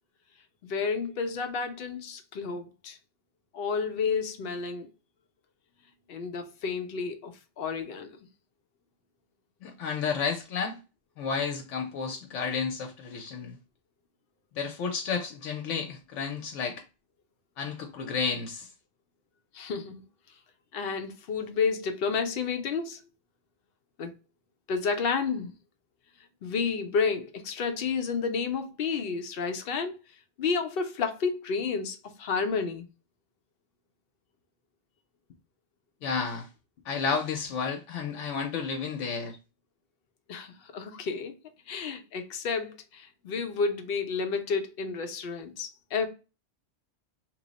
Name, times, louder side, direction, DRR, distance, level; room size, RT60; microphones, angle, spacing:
voice 1, 0.6-3.0 3.5-4.9 6.1-8.2 19.5-20.0 20.7-23.0 24.0-24.1 24.7-25.5 26.4-30.0 30.4-32.9 40.3-41.3 41.7-46.1, left 5 dB, 60° left, 0.7 m, -31 dB
voice 2, 9.6-10.8 11.2-13.6 14.5-16.8 17.6-18.7 36.0-36.5 36.8-39.4, left 5 dB, 85° left, 0.9 m, -31 dB
3.0 x 2.0 x 3.9 m
omnidirectional pair, 1.2 m